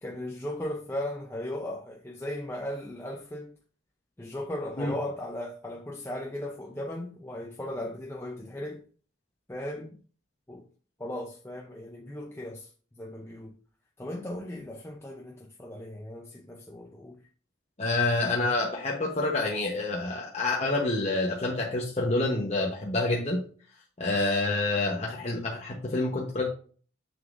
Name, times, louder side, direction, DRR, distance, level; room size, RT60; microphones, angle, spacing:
voice 1, 0.0-3.5 4.2-8.8 9.5-10.0 10.5-10.7 11.0-13.6 14.0-17.2, left 1 dB, 10° left, 0.6 m, -37 dB
voice 2, 17.8-23.4 24.0-26.5, left 2 dB, 35° left, 1.0 m, -27 dB
7.1 x 6.5 x 2.6 m
head